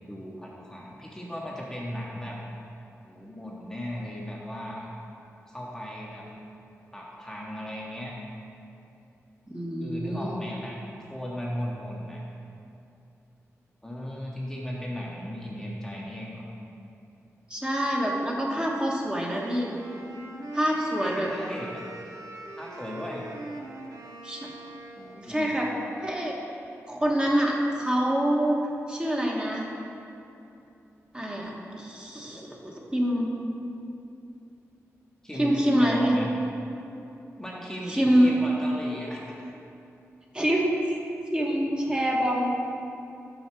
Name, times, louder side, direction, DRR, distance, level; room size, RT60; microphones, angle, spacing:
voice 1, 0.1-2.4 3.1-4.9 5.5-6.3 6.9-8.1 9.8-12.2 13.8-16.5 21.0-21.8 22.6-23.3 25.0-25.6 35.2-36.3 37.4-39.4, equal, 10° left, -4 dB, 0.8 m, -36 dB
voice 2, 9.5-10.4 17.5-19.8 20.5-21.3 24.2-24.5 25.2-25.7 26.0-26.4 26.9-28.6 28.9-29.6 31.1-33.3 35.3-36.1 37.9-38.3 40.3-41.0 41.3-42.6, equal, 15° right, -2 dB, 1.1 m, -26 dB
Wind instrument woodwind instrument, 19.2-25.4, right 2 dB, 90° right, 0.6 m, -42 dB
6.9 x 5.6 x 4.4 m, 2.7 s
cardioid pair, 80°, 5 cm